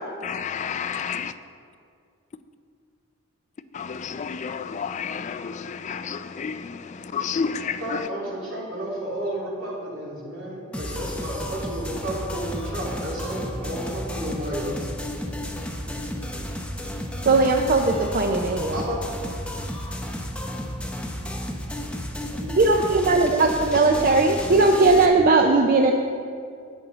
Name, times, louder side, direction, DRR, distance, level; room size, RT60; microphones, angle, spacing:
voice 1, 0.2-1.3 3.7-8.1, left 6 dB, 35° left, 0.3 m, -30 dB
voice 2, 7.8-14.9 18.7-19.0, right 1 dB, 75° right, 2.8 m, -31 dB
sound 1, 10.7-25.1, equal, 5° left, 0.7 m, -32 dB
voice 3, 17.3-18.8 22.3-25.9, right 3 dB, 45° right, 0.5 m, -19 dB
11.0 x 8.9 x 3.9 m
head